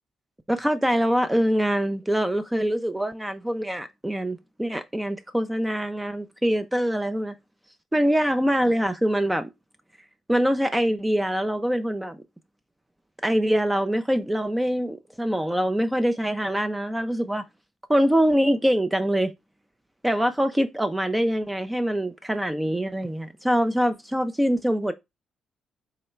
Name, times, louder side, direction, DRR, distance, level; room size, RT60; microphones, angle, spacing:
voice 1, 0.5-7.3 7.9-9.5 10.3-12.2 13.2-17.4 17.9-19.3 20.0-24.9, equal, 10° right, 0.3 m, -24 dB
3.7 x 2.1 x 4.3 m
cardioid pair, 90°, 0 cm